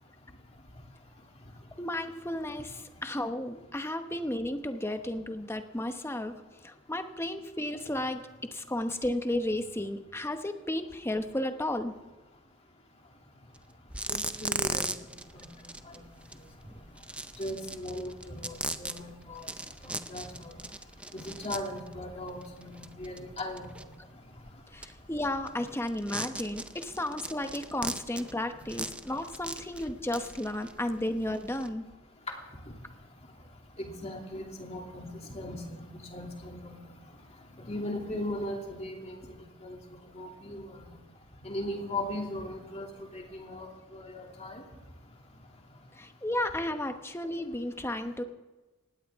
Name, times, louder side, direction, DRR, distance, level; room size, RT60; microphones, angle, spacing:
voice 1, 1.8-6.4 6.6-11.9 24.7-31.8 46.0-48.2, left 1 dB, 10° left, 7 dB, 0.9 m, -33 dB
sound 1, 13.5-13.6 13.9-31.7, right 2 dB, 5° right, 0.5 m, -39 dB
voice 2, 14.1-14.9 15.3-15.9 17.4-19.4 19.8-20.6 21.1-23.7 33.8-36.7 37.6-39.2 39.6-39.8 40.1-40.9 41.4-42.9 43.1-44.6, left 1 dB, 30° left, 1 dB, 2.6 m, -38 dB
19.5 x 16.5 x 3.6 m, 1.2 s
head